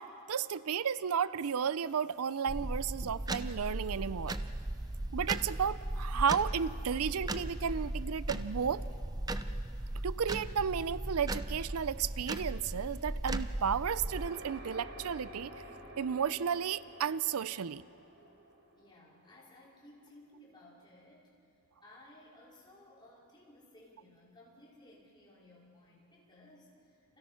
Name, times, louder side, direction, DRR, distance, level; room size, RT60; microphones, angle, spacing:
voice 1, 0.0-4.4 5.1-8.8 10.0-15.5 16.0-17.8, right 7 dB, 85° right, 17 dB, 0.5 m, -33 dB
sound 1, 2.5-14.3, right 1 dB, 15° right, 0.6 m, -37 dB
sound 2, 14.1-19.7, right 1 dB, 55° right, 4.4 m, -50 dB
voice 2, 18.8-21.3 21.8-27.2, left 1 dB, 20° left, -5 dB, 5.1 m, -58 dB
29.5 x 28.0 x 5.7 m, 2.6 s
head